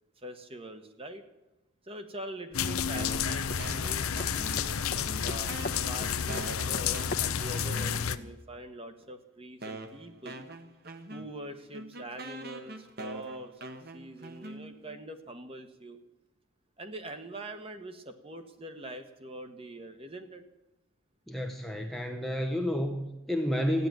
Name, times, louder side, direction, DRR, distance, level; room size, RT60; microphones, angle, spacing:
voice 1, 0.2-1.2 1.9-5.5 5.9-10.4 11.1-16.0 16.8-20.5, right 1 dB, 25° right, 7 dB, 1.2 m, -44 dB
sound 1, 2.5-8.2, left 7 dB, 90° left, 0.7 m, -31 dB
sound 2, 2.5-8.1, left 2 dB, 40° left, 0.9 m, -42 dB
sound 3, 2.9-4.8 5.1-8.3 9.0-9.1 9.6-15.0, right 2 dB, 45° right, 1.2 m, -43 dB
voice 2, 21.3-23.9, equal, ahead, 3 dB, 0.8 m, -30 dB
15.0 x 10.0 x 9.2 m, 0.96 s
head